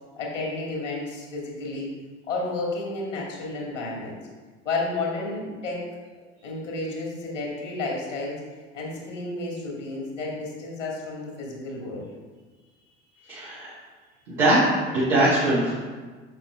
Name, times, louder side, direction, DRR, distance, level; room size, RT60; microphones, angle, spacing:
voice 1, 0.2-1.9 2.3-4.2 4.6-5.9 6.4-8.4 8.7-12.1, left 2 dB, 85° left, -3 dB, 2.2 m, -31 dB
voice 2, 13.3-13.7 14.3-14.6 14.9-15.7, right 1 dB, 75° right, -9 dB, 2.0 m, -21 dB
7.8 x 6.0 x 3.2 m, 1.4 s
figure-of-eight pair, 70°, 36 cm